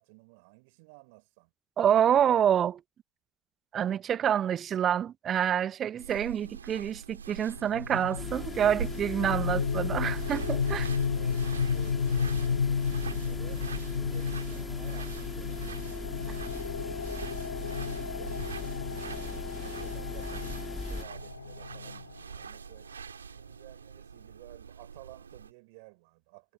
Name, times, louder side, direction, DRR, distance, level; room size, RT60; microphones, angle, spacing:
voice 1, 0.0-1.5 10.9-13.7 14.0-18.4 19.0-20.6 20.9-23.0 23.3-26.5, right 29 dB, 65° right, 4.9 m, -54 dB
voice 2, 1.8-2.8 3.7-10.9, right 9 dB, 45° right, 1.1 m, -27 dB
sound 1, 6.0-25.5, right 6 dB, 80° right, 3.2 m, -44 dB
sound 2, 7.6-22.4, left 6 dB, 80° left, 0.3 m, -33 dB
sound 3, 8.2-21.0, left 3 dB, 15° left, 2.6 m, -39 dB
figure-of-eight pair, 55°, 0 cm